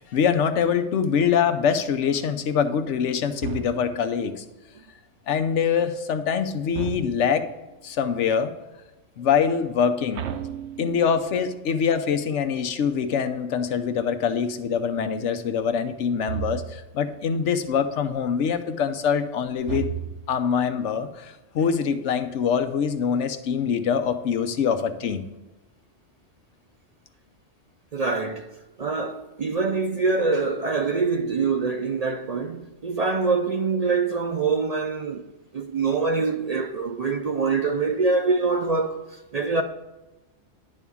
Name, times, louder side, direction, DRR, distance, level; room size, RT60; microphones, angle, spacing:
voice 1, 0.0-4.4 5.3-7.5 7.8-8.5 9.2-10.2 10.8-20.0 20.3-25.3, left 7 dB, 90° left, 1.0 m, -24 dB
sound 1, 3.4-4.2 6.7-7.5 10.1-11.3 16.3-16.9 19.6-20.5, right 10 dB, 75° right, 0.9 m, -34 dB
voice 2, 27.9-28.5 28.8-35.2 35.5-39.0 39.3-39.6, right 4 dB, 50° right, 0.5 m, -24 dB
10.5 x 3.6 x 7.0 m
omnidirectional pair, 1.2 m